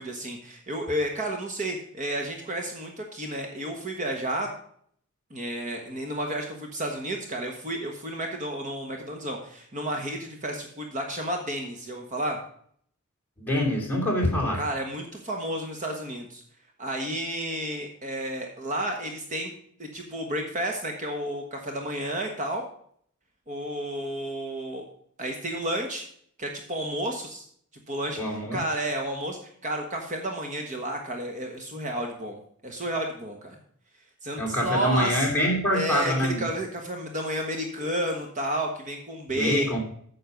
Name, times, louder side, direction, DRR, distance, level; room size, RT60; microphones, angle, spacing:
voice 1, 0.0-4.5 5.3-12.4 14.5-16.4 16.8-19.5 19.8-22.6 23.5-24.9 25.2-26.0 26.4-27.5 27.9-28.2 28.5-33.6 34.2-35.3 35.7-39.8, right 1 dB, 35° right, 2 dB, 1.4 m, -31 dB
voice 2, 13.4-14.6 28.2-28.6 34.4-36.4 39.3-39.8, left 1 dB, 10° left, -3 dB, 2.9 m, -25 dB
9.5 x 6.4 x 5.2 m, 0.62 s
head